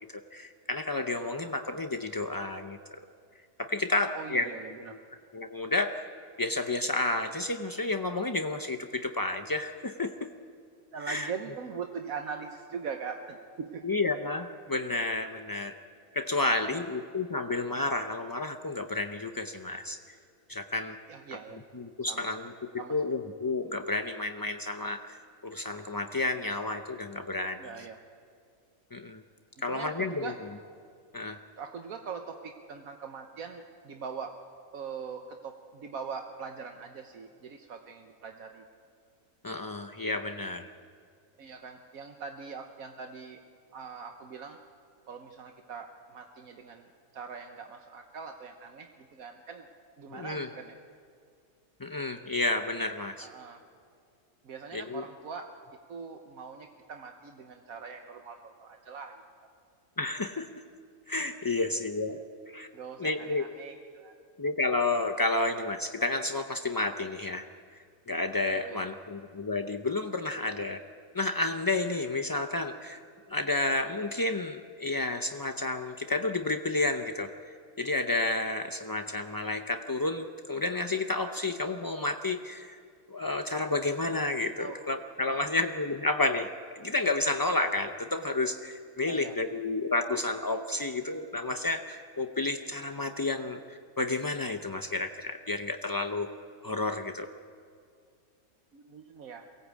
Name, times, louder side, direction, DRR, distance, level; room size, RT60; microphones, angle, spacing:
voice 1, 0.3-2.8 3.6-4.5 5.3-5.9 6.4-10.3 11.0-11.3 13.8-15.7 16.1-20.2 20.5-21.0 21.7-27.8 28.9-29.2 29.6-30.3 31.1-31.4 39.4-40.7 50.1-50.5 51.8-53.3 54.7-55.0 60.0-60.5 61.1-62.2 62.5-62.7 63.0-63.4 64.4-67.4 68.1-70.8 71.1-73.0 73.3-77.3 77.8-82.8 83.1-86.5 86.7-96.3 96.6-97.3, left 2 dB, 35° left, 6 dB, 0.3 m, -31 dB
voice 2, 4.1-5.0 10.9-13.9 16.6-16.8 21.1-21.6 22.0-22.3 22.8-23.0 27.6-28.0 29.6-30.3 31.6-34.4 34.7-38.6 41.4-43.4 43.7-44.6 45.1-46.9 47.1-49.7 50.0-50.7 53.2-53.6 54.4-55.5 55.9-59.5 62.7-64.1 68.4-68.9 84.6-84.8 85.3-85.5 89.1-89.4 98.7-99.5, right 6 dB, 75° right, 4 dB, 1.5 m, -42 dB
23.0 x 18.0 x 8.3 m, 2.2 s
omnidirectional pair, 1.5 m